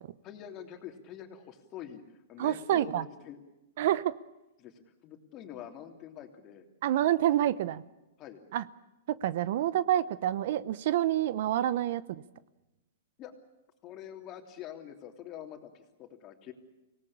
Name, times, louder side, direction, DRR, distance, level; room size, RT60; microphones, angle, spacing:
voice 1, 0.2-2.0 2.3-3.4 4.6-6.7 8.2-8.4 13.2-13.3 13.8-16.5, left 10 dB, 30° left, 5 dB, 3.1 m, -45 dB
voice 2, 2.4-3.1 3.8-4.1 6.8-7.8 8.5-8.6 9.1-12.2, right 12 dB, 60° right, 18 dB, 0.8 m, -28 dB
25.0 x 18.5 x 8.7 m, 0.99 s
hypercardioid pair, 140°, 0 cm